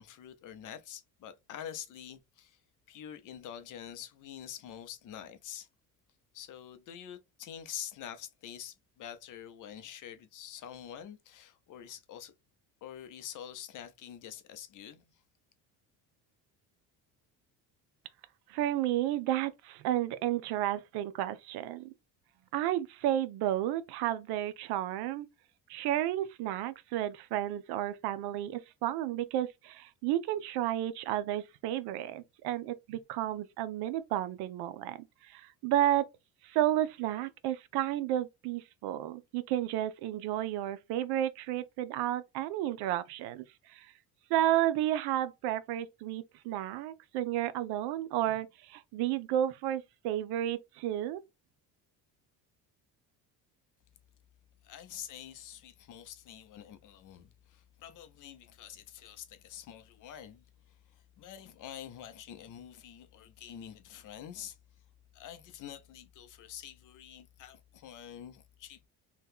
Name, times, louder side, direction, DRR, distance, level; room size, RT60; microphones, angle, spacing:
voice 1, 0.0-2.6 2.9-5.7 6.3-12.3 12.8-15.0 54.6-60.4 60.9-64.6 65.1-68.9, left 10 dB, 55° left, 0.6 m, -46 dB
voice 2, 18.5-21.9 22.5-25.3 25.7-36.0 36.4-43.9 44.3-51.2, right 12 dB, 80° right, 0.6 m, -32 dB
2.8 x 2.3 x 3.5 m
cardioid pair, 120°, 38 cm